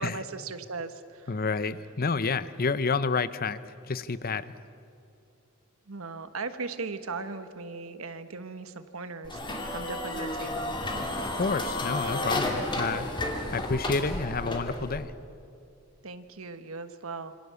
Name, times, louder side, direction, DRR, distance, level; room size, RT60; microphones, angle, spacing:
voice 1, 0.0-1.4 5.9-10.8 16.0-17.3, right 4 dB, 75° right, 10 dB, 1.3 m, -38 dB
voice 2, 1.3-3.6 3.9-4.5 11.2-13.1 13.5-15.1, left 4 dB, 45° left, 15 dB, 0.8 m, -29 dB
sound 1, 9.2-15.0, left 1 dB, 20° left, 2.7 m, -32 dB
27.0 x 26.0 x 7.0 m, 2.5 s
head